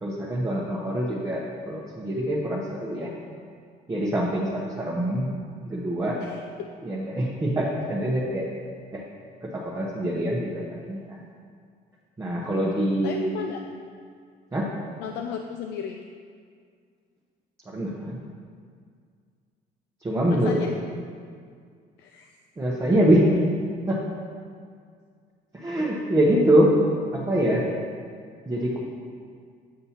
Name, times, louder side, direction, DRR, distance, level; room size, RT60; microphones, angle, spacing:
voice 1, 0.0-3.1 3.9-5.3 5.7-6.2 6.8-8.5 8.9-9.0 9.4-11.2 12.2-13.3 14.5-14.7 17.7-18.2 20.0-20.6 22.6-23.3 23.9-24.0 25.5-26.7 27.1-27.6 28.5-28.8, right 1 dB, 15° right, -5 dB, 0.9 m, -24 dB
voice 2, 6.2-6.7 13.0-13.6 15.0-16.0 20.3-20.7 22.0-22.3, left 8 dB, 85° left, 4 dB, 0.4 m, -35 dB
8.5 x 5.3 x 2.9 m, 2.1 s
cardioid pair, 110°, 17 cm